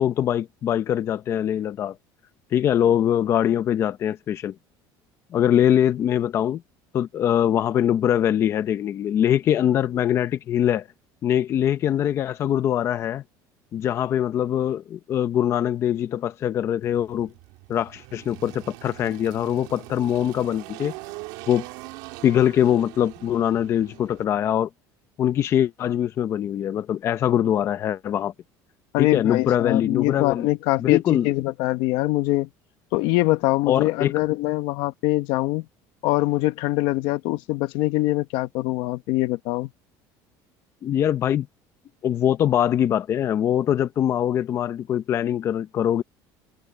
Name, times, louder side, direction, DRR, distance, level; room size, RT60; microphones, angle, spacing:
voice 1, 0.0-1.9 2.5-4.5 5.3-6.6 6.9-10.9 11.2-13.2 13.7-17.3 17.7-20.9 21.5-21.7 22.2-24.7 25.2-28.3 29.0-30.5 30.8-31.3 33.7-34.1 40.8-41.5 42.0-46.0, left 10 dB, 30° left, 0.6 m, -22 dB
Engine, 16.8-24.2, right 23 dB, 85° right, 2.8 m, -42 dB
voice 2, 28.9-31.0 31.2-32.5 32.9-35.6 36.0-39.7, left 19 dB, 65° left, 1.0 m, -23 dB
cardioid pair, 175°, 9 cm